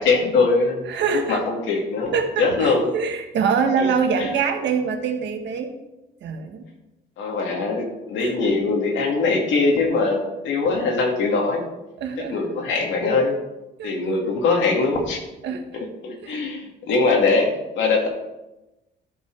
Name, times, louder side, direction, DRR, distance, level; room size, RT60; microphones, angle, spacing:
voice 1, 0.0-0.9 1.3-2.9 3.8-3.9 4.2-4.3 7.2-11.6 12.3-13.4 13.8-15.2 15.7-18.1, left 3 dB, 80° left, 1 dB, 2.4 m, -22 dB
voice 2, 0.9-1.4 2.1-5.8 6.2-6.7 8.2-8.4 12.0-12.4 13.8-13.9 15.4-15.8 16.2-16.5, right 6 dB, 70° right, 4 dB, 1.5 m, -24 dB
13.0 x 5.7 x 4.8 m, 0.98 s
cardioid pair, 110°, 19 cm